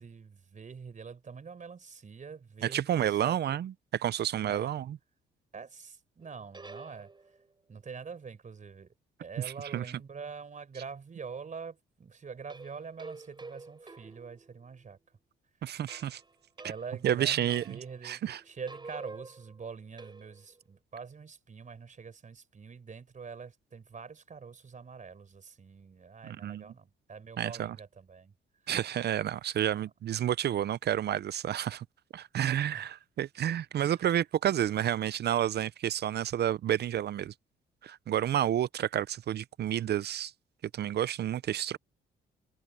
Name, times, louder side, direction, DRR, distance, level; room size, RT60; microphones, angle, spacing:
voice 1, 0.0-3.6 4.4-4.7 5.5-7.1 7.7-8.9 9.2-15.0 16.6-28.3 29.7-29.9 32.7-32.9 33.9-34.0, right 5 dB, 40° right, 4.9 m, -45 dB
voice 2, 2.6-3.7 4.0-5.0 9.4-9.8 15.6-16.2 17.0-17.8 18.0-18.4 26.2-26.7 27.4-27.8 28.7-31.9 32.1-37.3 37.8-40.3 40.7-41.8, right 11 dB, 55° right, 0.6 m, -30 dB
sound 1, 6.2-7.5 12.5-14.9 15.9-17.1 17.5-18.1 18.3-20.6, right 3 dB, 20° right, 6.2 m, -49 dB
cardioid pair, 90°, 20 cm